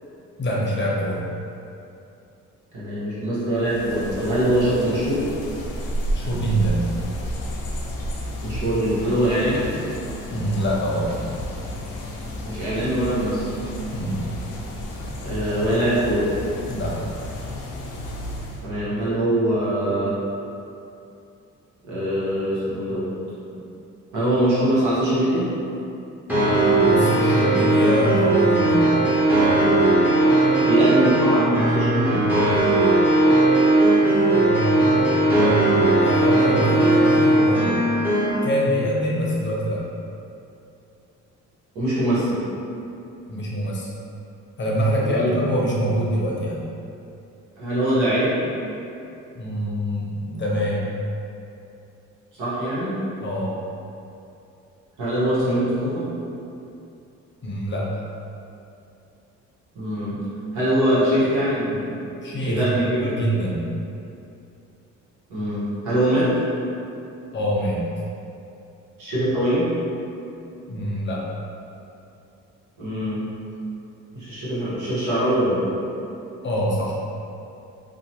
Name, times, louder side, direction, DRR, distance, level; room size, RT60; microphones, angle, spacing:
voice 1, 0.4-1.2 6.1-6.8 10.3-11.1 13.9-14.2 16.7-17.0 26.8-28.9 34.2-37.9 38.4-39.8 43.3-43.9 44.6-46.6 49.3-50.9 53.2-53.6 57.4-57.9 62.2-62.6 62.9-63.7 67.3-67.8 70.7-71.3 76.4-76.9, equal, 40° left, -4 dB, 0.6 m, -25 dB
voice 2, 2.7-5.2 8.4-9.7 12.4-13.5 15.2-16.3 18.6-20.2 21.8-23.1 24.1-25.5 30.6-32.2 41.7-42.4 45.0-45.5 47.6-48.4 52.3-53.0 55.0-56.1 59.7-60.2 60.5-61.9 62.4-63.1 65.3-66.3 69.0-69.7 72.8-73.2 74.1-75.7, right 1 dB, 80° right, -10 dB, 1.2 m, -22 dB
sound 1, 3.5-18.6, equal, 80° left, 0.5 m, -32 dB
sound 2, 26.3-38.3, right 2 dB, 5° right, 0.7 m, -18 dB
2.7 x 2.2 x 2.8 m, 2.7 s
cardioid pair, 90°, 30 cm